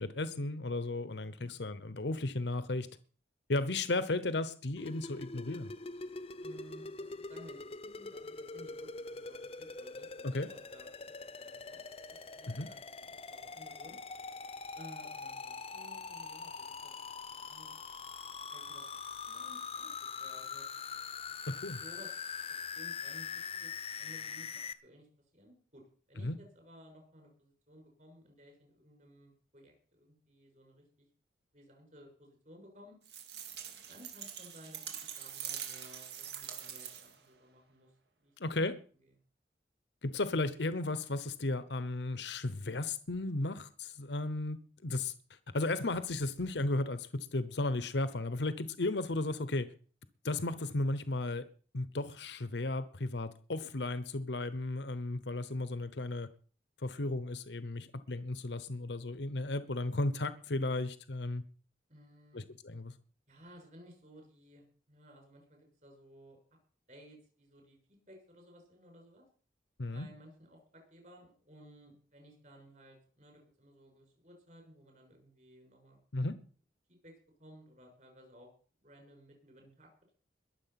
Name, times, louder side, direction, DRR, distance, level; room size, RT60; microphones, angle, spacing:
voice 1, 0.0-2.9 3.5-5.7 10.2-10.5 12.5-12.7 21.5-21.8 26.2-26.4 38.4-38.8 40.0-49.7 50.2-51.5 51.7-56.3 56.8-61.4 62.3-62.9 69.8-70.1 76.1-76.4, left 2 dB, 75° left, 1.0 m, -35 dB
sound 1, 4.8-24.7, left 5 dB, 30° left, 0.8 m, -43 dB
voice 2, 6.4-10.9 11.2-11.8 12.1-14.0 14.7-17.8 18.5-20.7 21.7-22.3 22.7-25.1 25.3-25.8 26.1-31.1 31.5-33.0 33.6-38.6 61.9-62.5 63.3-66.4 66.9-67.8 68.1-69.2 69.9-76.0 76.9-77.1 77.4-78.5 78.8-80.1, equal, 45° right, 6.6 m, -57 dB
sound 2, 33.1-37.3, right 9 dB, 70° right, 2.4 m, -44 dB
21.5 x 7.7 x 5.9 m
head